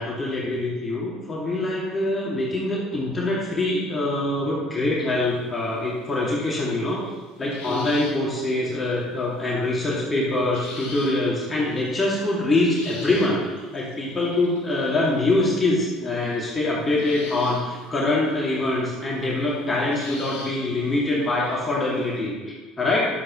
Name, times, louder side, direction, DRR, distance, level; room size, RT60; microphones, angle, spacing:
voice 1, 0.0-7.0 7.4-23.1, left 2 dB, 25° left, -5 dB, 2.4 m, -24 dB
sound 1, 5.4-5.5 7.5-8.9 10.5-11.3 11.7-15.4 16.9-18.3 18.5-18.7 19.2-22.1, left 3 dB, 80° left, 2.6 m, -42 dB
11.0 x 7.8 x 3.2 m, 1.3 s
hypercardioid pair, 70°, 0 cm